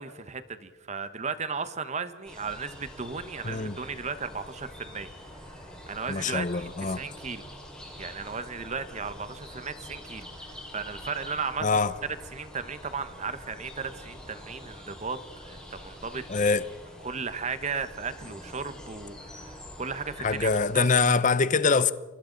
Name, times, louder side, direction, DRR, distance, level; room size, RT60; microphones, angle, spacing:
voice 1, 0.0-5.1 5.9-7.5 8.0-11.7 12.3-16.2 17.0-21.1, right 5 dB, 35° right, 1.1 m, -35 dB
sound 1, 2.2-20.7, left 1 dB, 5° left, 5.2 m, -45 dB
voice 2, 3.4-3.8 6.1-7.0 11.6-11.9 16.3-16.6 20.2-21.9, left 4 dB, 40° left, 0.7 m, -24 dB
30.0 x 24.5 x 4.0 m
head